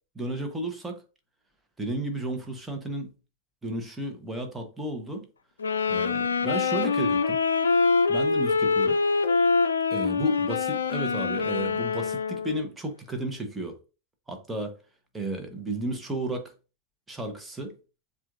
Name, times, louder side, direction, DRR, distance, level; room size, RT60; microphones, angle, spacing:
voice 1, 0.1-1.0 1.8-3.1 3.6-5.3 5.9-7.4 8.1-9.0 9.9-13.8 14.3-14.8 15.1-16.5 17.1-17.7, right 1 dB, 10° right, 1.1 m, -33 dB
sound 1, 5.6-12.7, left 4 dB, 70° left, 0.4 m, -24 dB
7.3 x 2.5 x 2.5 m
figure-of-eight pair, 90°, 0 cm